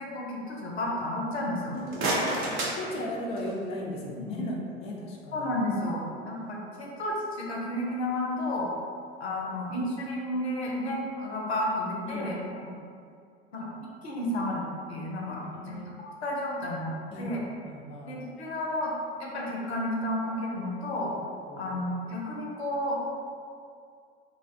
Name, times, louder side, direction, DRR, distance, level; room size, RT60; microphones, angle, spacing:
voice 1, 0.0-1.8 3.4-3.5 4.2-4.5 5.3-8.7 9.2-12.4 13.5-14.6 14.9-16.9 17.2-17.4 18.1-18.9 19.2-21.1 21.6-23.0, left 1 dB, 85° left, -3 dB, 0.5 m, -32 dB
sound 1, 1.6-3.7, right 1 dB, 45° right, 0.6 m, -31 dB
voice 2, 1.7-5.5 12.1-12.3 15.5-15.9 17.1-18.2 21.5-21.6, left 1 dB, 20° left, -3 dB, 0.3 m, -37 dB
2.5 x 2.0 x 2.4 m, 2.3 s
figure-of-eight pair, 70°, 31 cm